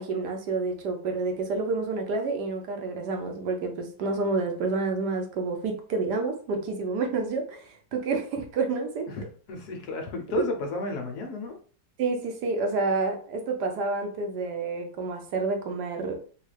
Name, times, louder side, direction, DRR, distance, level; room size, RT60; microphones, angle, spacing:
voice 1, 0.0-9.1 12.0-16.2, right 3 dB, 70° right, 4 dB, 1.2 m, -29 dB
voice 2, 9.1-11.6, left 2 dB, 65° left, 3 dB, 1.2 m, -33 dB
3.6 x 2.4 x 3.3 m, 0.42 s
omnidirectional pair, 1.9 m